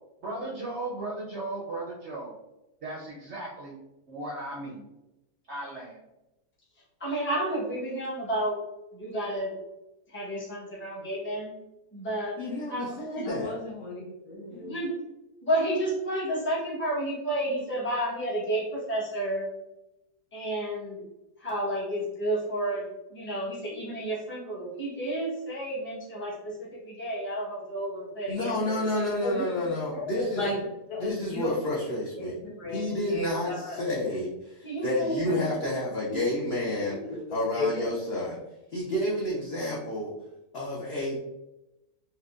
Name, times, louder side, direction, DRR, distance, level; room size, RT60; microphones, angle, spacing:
voice 1, 0.2-2.3 2.8-3.8 4.1-4.8 5.5-6.0, right 2 dB, 60° right, -4 dB, 0.7 m, -36 dB
voice 2, 7.0-8.6 8.9-9.5 10.1-11.5 11.9-12.4 12.7-13.3 14.5-14.9 15.4-19.5 20.3-21.0 21.4-28.7 29.3-29.5 34.6-35.8, right 1 dB, 10° left, -6 dB, 0.6 m, -31 dB
voice 3, 12.4-13.5 28.3-30.5 31.0-32.4 32.7-37.0 37.3-38.4 38.7-40.1 40.5-41.2, left 1 dB, 65° left, -4 dB, 0.6 m, -30 dB
voice 4, 13.2-14.7 29.2-30.6 30.9-31.5 32.2-32.8 33.1-33.8 34.8-35.4 36.0-36.4 37.1-37.9, left 2 dB, 90° left, -4 dB, 1.8 m, -34 dB
4.2 x 2.2 x 2.4 m, 0.95 s
omnidirectional pair, 1.7 m